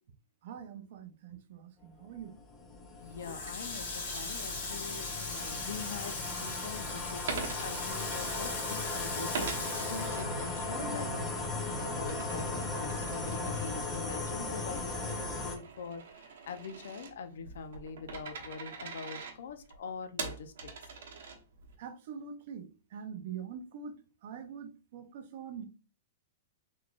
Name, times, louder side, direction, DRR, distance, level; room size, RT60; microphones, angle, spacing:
voice 1, 0.4-2.3 10.8-11.0 11.3-11.6 21.8-23.9 24.2-25.7, right 6 dB, 45° right, 0.6 m, -44 dB
sound 1, 2.1-15.6, left 2 dB, 15° left, 0.6 m, -37 dB
voice 2, 3.0-9.3 9.9-11.1 11.8-20.7, left 5 dB, 65° left, 0.6 m, -44 dB
Water tap faucet, 3.2-11.0 11.4-12.7, left 3 dB, 40° left, 1.5 m, -40 dB
Coin (dropping), 7.3-8.9 9.3-10.9 11.3-21.7, right 5 dB, 65° right, 0.9 m, -43 dB
4.0 x 3.2 x 2.4 m
supercardioid pair, 180°, 0 cm